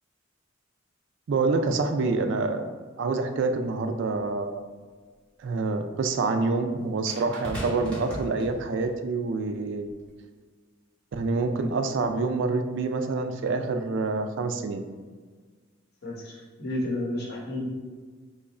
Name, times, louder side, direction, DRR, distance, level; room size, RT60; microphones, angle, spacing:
voice 1, 1.3-2.7 3.0-4.6 5.4-9.9 11.1-14.8, right 3 dB, 65° right, 7 dB, 0.3 m, -27 dB
sound 1, 4.2-4.3 7.1-9.0 9.9-10.1, equal, 5° left, 0.8 m, -37 dB
voice 2, 16.0-17.7, left 1 dB, 55° left, -4 dB, 0.9 m, -31 dB
3.0 x 2.4 x 4.1 m, 1.5 s
head